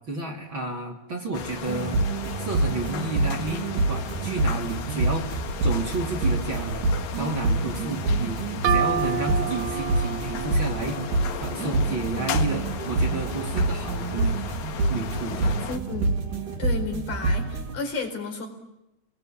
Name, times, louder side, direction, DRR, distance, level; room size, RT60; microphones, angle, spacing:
voice 1, 0.1-2.0 2.4-8.4 8.7-11.0 11.4-14.4 14.9-15.7, right 2 dB, 35° right, 2 dB, 3.5 m, -31 dB
sound 1, 1.3-15.8, left 8 dB, 80° left, 3.4 m, -36 dB
sound 2, 1.7-17.7, right 2 dB, 60° right, 4.4 m, -27 dB
sound 3, 8.6-12.2, right 7 dB, 75° right, 3.1 m, -30 dB
voice 2, 15.7-16.2 16.6-18.5, left 3 dB, 55° left, 4 dB, 5.9 m, -32 dB
29.5 x 22.5 x 8.8 m, 0.92 s
omnidirectional pair, 4.4 m